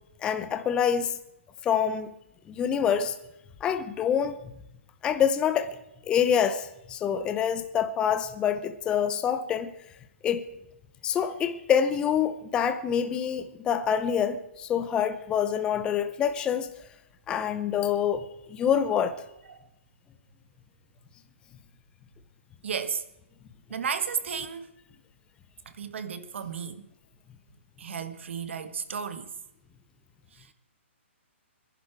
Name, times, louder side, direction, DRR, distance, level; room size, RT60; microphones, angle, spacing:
voice 1, 0.2-1.2 1.6-2.1 2.5-3.2 3.6-4.5 5.0-5.8 6.1-9.7 10.2-10.5 11.0-16.7 17.3-19.2, left 8 dB, 10° left, 0.8 m, -26 dB
voice 2, 22.6-23.0 23.7-24.7 25.8-26.8 27.8-29.3, right 6 dB, 65° right, 1.6 m, -33 dB
24.0 x 11.0 x 4.7 m
hypercardioid pair, 160°, 7 cm